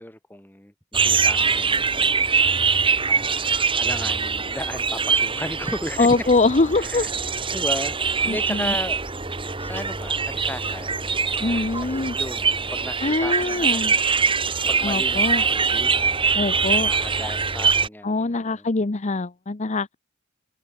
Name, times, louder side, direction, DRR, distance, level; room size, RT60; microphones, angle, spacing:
voice 1, 0.0-2.6 3.1-6.3 6.7-7.1 7.5-8.0 8.2-9.1 9.6-10.9 11.4-14.0 14.7-15.9 16.8-18.7, left 1 dB, 10° left, 3.1 m, -35 dB
sound 1, 0.9-17.9, right 5 dB, 25° right, 3.3 m, -23 dB
voice 2, 6.0-7.1 8.3-8.7 11.4-12.2 13.0-13.9 14.8-15.4 16.4-16.9 18.0-19.9, left 3 dB, 35° left, 0.8 m, -23 dB
open air
head